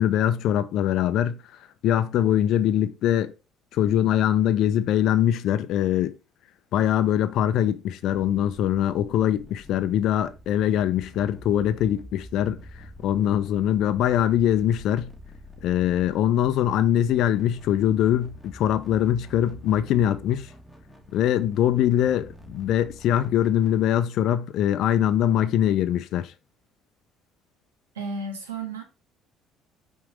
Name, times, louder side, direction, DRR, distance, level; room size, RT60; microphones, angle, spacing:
voice 1, 0.0-3.3 3.7-6.1 6.7-15.1 15.6-20.5 21.1-26.3, left 11 dB, 60° left, 0.5 m, -23 dB
sound 1, 8.1-23.8, left 1 dB, 5° right, 1.6 m, -46 dB
voice 2, 27.9-28.8, right 3 dB, 85° right, 1.5 m, -33 dB
6.0 x 3.7 x 4.9 m
hypercardioid pair, 55°, 0 cm